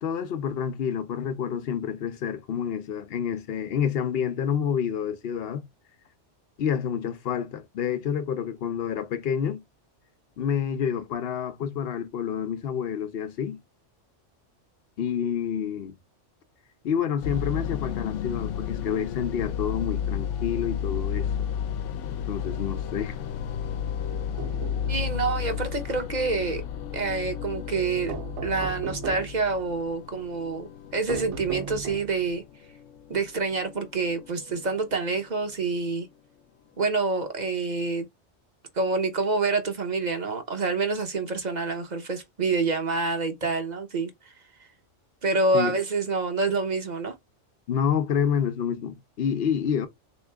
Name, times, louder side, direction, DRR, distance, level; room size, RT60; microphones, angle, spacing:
voice 1, 0.0-5.6 6.6-9.6 10.4-13.6 15.0-15.9 16.8-21.5 22.3-23.2 45.5-45.8 47.7-49.9, left 8 dB, 60° left, 0.9 m, -28 dB
sound 1, 17.2-35.6, left 8 dB, 85° left, 0.9 m, -33 dB
sound 2, 24.1-25.1 28.1-29.4 31.1-32.2, right 7 dB, 75° right, 1.0 m, -36 dB
voice 2, 24.9-26.6 26.9-28.1 28.4-32.4 33.1-36.1 36.8-38.1 38.7-44.3 44.6-44.7 45.2-47.1, right 3 dB, 40° right, 0.9 m, -27 dB
3.7 x 3.1 x 3.3 m
omnidirectional pair, 1.2 m